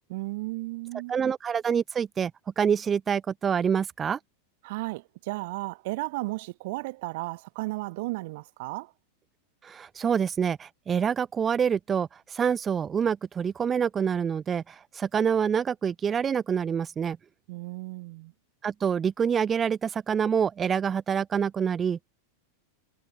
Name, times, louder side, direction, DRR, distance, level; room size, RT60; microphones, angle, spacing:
voice 1, 0.1-1.1 4.6-8.9 17.5-18.3, right 22 dB, 50° right, 1.0 m, -34 dB
voice 2, 1.1-2.3 2.6-4.2 9.6-17.2 18.6-22.1, right 7 dB, 20° right, 0.5 m, -26 dB
figure-of-eight pair, 90°, 0 cm